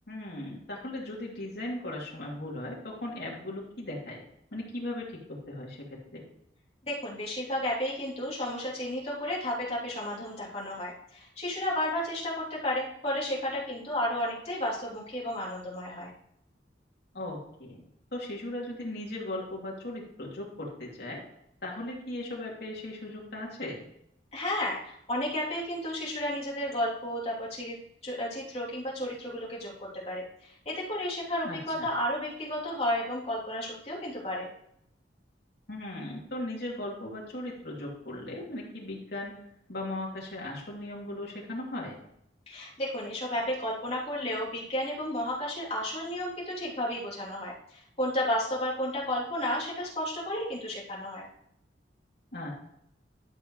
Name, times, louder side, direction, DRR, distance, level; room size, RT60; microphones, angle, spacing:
voice 1, 0.1-4.2 4.5-6.2 17.1-17.8 18.1-21.2 21.6-23.8 31.4-31.9 35.7-39.3 39.7-42.0 52.3-52.5, left 1 dB, 60° left, -3 dB, 2.8 m, -38 dB
voice 2, 6.9-16.1 24.3-27.8 28.0-34.5 42.5-51.2, left 1 dB, 35° left, -6 dB, 3.0 m, -32 dB
12.5 x 5.8 x 3.1 m, 0.74 s
head